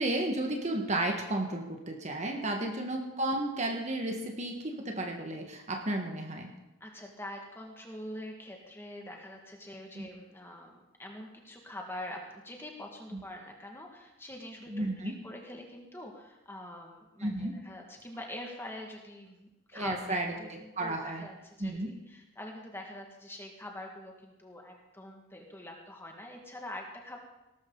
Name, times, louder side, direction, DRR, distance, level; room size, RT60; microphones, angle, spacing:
voice 1, 0.0-6.5 10.0-10.1 13.1-13.2 14.7-15.2 17.2-17.6 19.7-21.3 21.6-21.9, right 1 dB, 35° right, 2 dB, 1.7 m, -33 dB
voice 2, 6.8-27.2, left 1 dB, 10° left, 1 dB, 2.0 m, -45 dB
18.0 x 13.0 x 4.1 m, 0.98 s
head